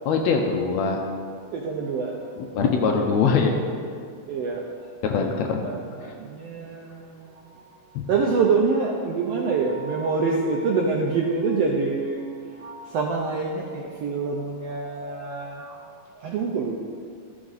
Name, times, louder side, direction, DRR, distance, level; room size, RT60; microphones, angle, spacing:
voice 1, 0.0-1.0 2.5-3.5 5.0-5.6, left 5 dB, 75° left, 3 dB, 1.7 m, -22 dB
voice 2, 1.5-2.5 2.9-3.3 4.3-4.6 5.1-5.4 5.6-7.4 8.1-15.8 16.2-16.8, right 4 dB, 80° right, 0 dB, 1.4 m, -26 dB
12.5 x 6.1 x 4.0 m, 2.2 s
omnidirectional pair, 3.5 m